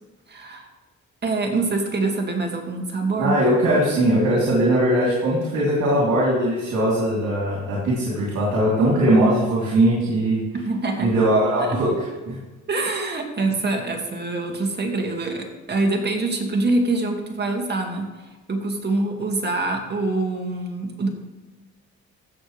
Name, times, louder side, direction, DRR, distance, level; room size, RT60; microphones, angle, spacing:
voice 1, 0.3-0.7 1.2-3.4 10.5-11.1 11.6-11.8 12.7-18.1 18.5-21.1, right 2 dB, 35° right, 2 dB, 2.2 m, -25 dB
voice 2, 3.2-10.4 11.0-11.9 12.3-12.4, right 1 dB, 70° right, -5 dB, 3.3 m, -20 dB
15.5 x 6.9 x 3.3 m, 1.2 s
cardioid pair, 90°, 30 cm